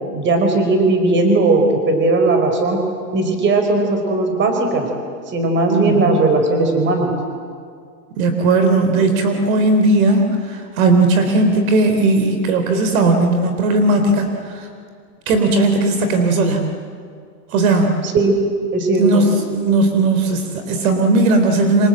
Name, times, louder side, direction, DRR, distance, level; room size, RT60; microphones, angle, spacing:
voice 1, 0.1-2.8 3.1-4.9 5.3-7.1 18.0-18.4 18.7-19.2, right 2 dB, 25° right, 5 dB, 4.9 m, -17 dB
voice 2, 5.7-6.1 8.2-14.3 15.3-16.7 17.5-17.9 19.0-19.2 19.5-21.9, right 2 dB, 60° right, 6 dB, 3.8 m, -16 dB
27.5 x 26.5 x 7.8 m, 2.2 s
supercardioid pair, 140°, 47 cm